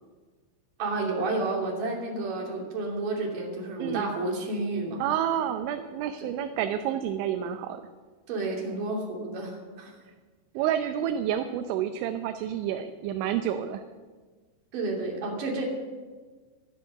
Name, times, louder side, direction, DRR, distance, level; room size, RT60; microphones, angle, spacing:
voice 1, 0.8-5.0 6.2-6.4 8.3-9.9 14.7-15.6, right 2 dB, 50° right, -1 dB, 3.8 m, -31 dB
voice 2, 5.0-7.8 10.6-13.8, right 10 dB, 80° right, 7 dB, 3.0 m, -29 dB
13.5 x 13.0 x 6.6 m, 1.4 s
omnidirectional pair, 5.7 m